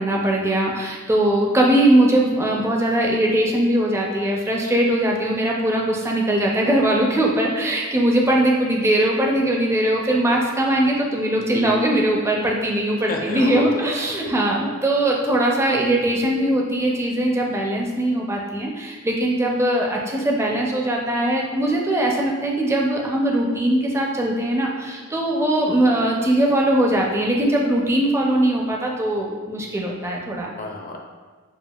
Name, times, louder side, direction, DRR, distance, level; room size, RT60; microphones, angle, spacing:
voice 1, 0.0-30.5, right 1 dB, 10° right, -1 dB, 0.4 m, -20 dB
voice 2, 13.1-13.9 16.0-16.2 30.6-31.0, left 2 dB, 40° left, 1 dB, 0.5 m, -30 dB
6.9 x 2.4 x 2.3 m, 1.5 s
head